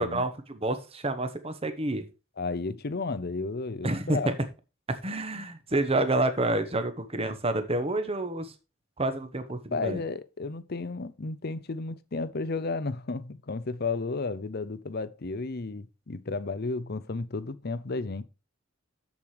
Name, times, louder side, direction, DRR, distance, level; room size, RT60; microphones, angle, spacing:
voice 1, 0.0-2.0 3.8-4.2 5.0-8.5 9.0-10.0, right 2 dB, 30° right, 1.1 m, -28 dB
voice 2, 2.4-4.4 9.7-18.2, left 3 dB, 50° left, 0.7 m, -33 dB
7.5 x 7.2 x 4.8 m
head